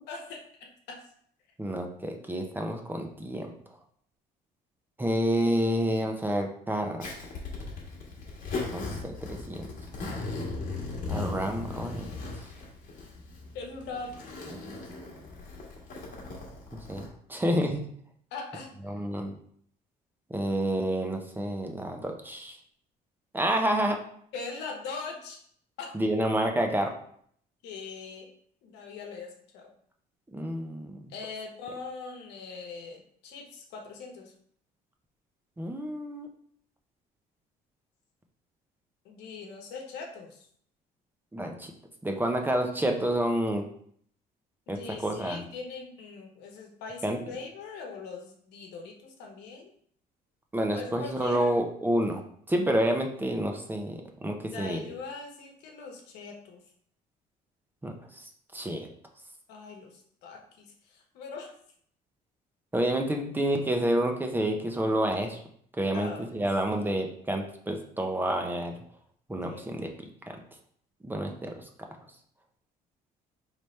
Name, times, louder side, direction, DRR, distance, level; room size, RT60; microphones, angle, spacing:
voice 1, 0.1-1.0 13.5-14.1 18.3-18.7 24.3-25.4 25.8-25.9 27.6-28.3 28.6-29.7 31.1-34.3 39.0-40.5 44.7-49.7 50.7-51.5 54.4-56.6 59.5-61.5 65.9-66.4 66.7-66.8 69.5-69.6, left 4 dB, 85° left, 1 dB, 1.0 m, -41 dB
voice 2, 1.6-3.5 5.0-7.1 8.7-9.7 11.1-12.1 14.5-14.6 16.9-17.8 18.9-19.3 20.3-22.6 23.3-24.0 25.9-26.9 30.3-31.0 35.6-36.3 41.3-41.7 42.0-43.6 44.7-45.5 47.0-47.2 50.5-52.2 52.5-54.8 57.8-58.9 62.7-65.4 65.8-68.7 69.3-69.9 71.0-71.6, right 1 dB, 10° right, 3 dB, 0.6 m, -29 dB
Zipper (clothing), 7.0-17.1, left 3 dB, 55° left, 1.2 m, -38 dB
4.1 x 3.3 x 3.2 m, 0.63 s
cardioid pair, 110°, 17 cm